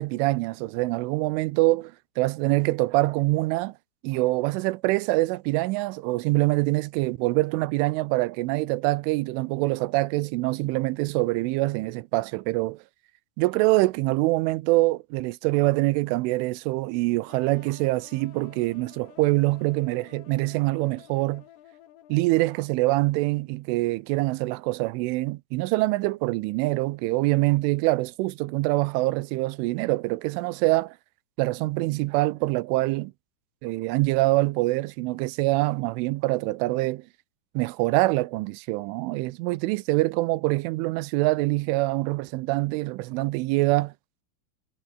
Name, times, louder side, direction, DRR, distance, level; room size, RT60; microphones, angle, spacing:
voice 1, 0.0-3.7 4.0-12.8 13.4-21.4 22.1-31.0 31.4-33.1 33.6-37.1 37.6-43.9, right 20 dB, 85° right, 3.2 m, -25 dB
sound 1, 17.3-23.1, left 12 dB, 85° left, 4.5 m, -52 dB
omnidirectional pair, 5.6 m